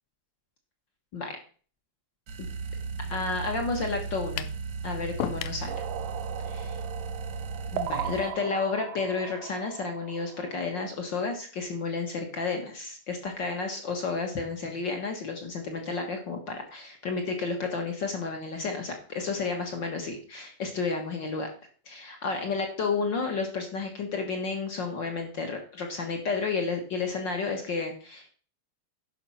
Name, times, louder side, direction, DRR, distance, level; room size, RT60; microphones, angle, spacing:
sound 1, 2.3-8.3, right 4 dB, 50° right, 1.5 m, -36 dB
voice 1, 3.1-4.5 4.8-5.7 6.5-6.6 7.7-21.5 21.9-28.3, left 4 dB, 45° left, 3 dB, 1.6 m, -31 dB
sound 2, 4.4-4.6 5.2-5.6, left 13 dB, 75° left, 1.8 m, -33 dB
sound 3, 5.7-11.0, right 10 dB, 90° right, 2.6 m, -38 dB
11.0 x 5.9 x 5.7 m, 0.41 s
omnidirectional pair, 3.9 m